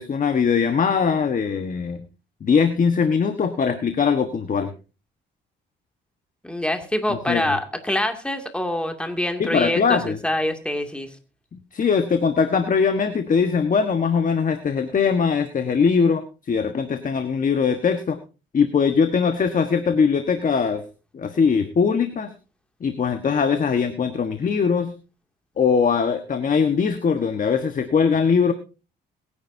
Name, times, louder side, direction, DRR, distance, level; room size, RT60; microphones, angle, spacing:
voice 1, 0.0-2.0 2.4-4.7 7.1-7.5 9.4-10.2 11.5-18.2 18.5-20.8 21.1-22.3 22.8-24.9 25.6-28.5, left 6 dB, 40° left, 8 dB, 1.3 m, -21 dB
voice 2, 6.4-11.1, left 1 dB, 5° left, 5 dB, 2.4 m, -25 dB
22.0 x 10.5 x 2.7 m, 0.32 s
cardioid pair, 90°, 20 cm